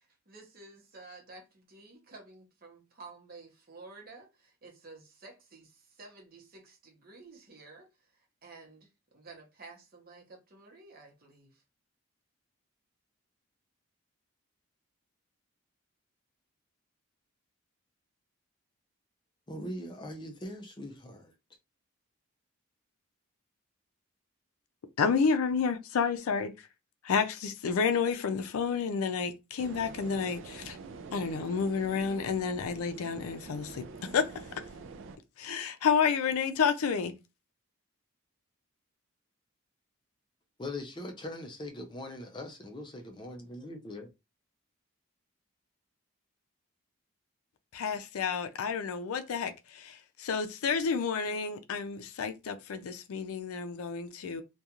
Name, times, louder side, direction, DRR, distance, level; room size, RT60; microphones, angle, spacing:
voice 1, 0.0-11.6, right 3 dB, 45° right, 0.8 m, -52 dB
voice 2, 19.5-21.3 40.6-44.1, left 1 dB, 20° left, 0.4 m, -41 dB
voice 3, 25.0-26.5 27.0-30.8 31.1-34.3 35.4-37.1 47.7-54.4, left 6 dB, 85° left, 0.4 m, -30 dB
sound 1, 29.6-35.2, right 4 dB, 60° right, 0.3 m, -46 dB
2.4 x 2.2 x 2.8 m
head